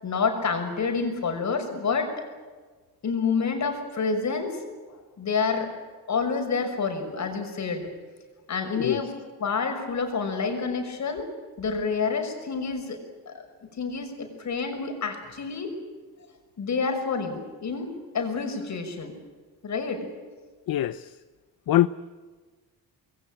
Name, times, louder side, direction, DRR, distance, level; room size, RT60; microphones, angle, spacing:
voice 1, 0.0-2.1 3.0-4.6 5.2-5.7 6.1-7.9 8.5-9.1 9.4-11.3 11.6-13.0 13.3-15.7 16.6-17.9 18.1-19.1 19.6-20.1, left 5 dB, 50° left, 6.1 m, -28 dB
voice 2, 20.7-21.2 21.7-21.9, left 13 dB, 65° left, 0.8 m, -23 dB
27.0 x 21.5 x 9.0 m
cardioid pair, 130°, 37 cm